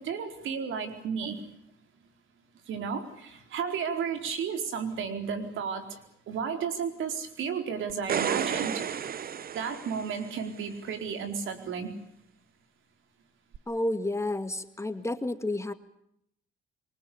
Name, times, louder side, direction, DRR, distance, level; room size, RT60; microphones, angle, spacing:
voice 1, 0.0-1.4 2.7-6.0 6.3-9.1 9.5-11.9, right 6 dB, 80° right, 6 dB, 4.4 m, -33 dB
sound 1, 7.9-10.5 13.5-13.6, right 8 dB, 50° right, 1.0 m, -32 dB
voice 2, 13.7-15.7, left 1 dB, 15° left, 9 dB, 2.0 m, -30 dB
26.5 x 24.0 x 8.7 m, 0.74 s
cardioid pair, 90°, 20 cm